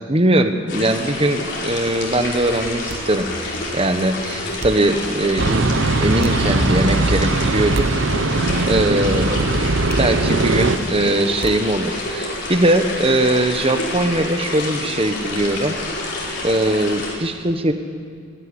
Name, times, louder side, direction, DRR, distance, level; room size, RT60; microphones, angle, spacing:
voice 1, 0.1-3.3 3.7-7.9 8.6-9.5 10.0-15.8 16.4-17.7, right 1 dB, 30° right, 7 dB, 1.3 m, -20 dB
sound 1, 0.7-17.1, left 2 dB, 65° left, 4.9 m, -28 dB
sound 2, 1.7-12.2, right 2 dB, 55° right, 0.9 m, -37 dB
sound 3, 5.4-10.8, right 2 dB, 85° right, 0.9 m, -20 dB
16.5 x 15.5 x 10.0 m, 2.2 s
head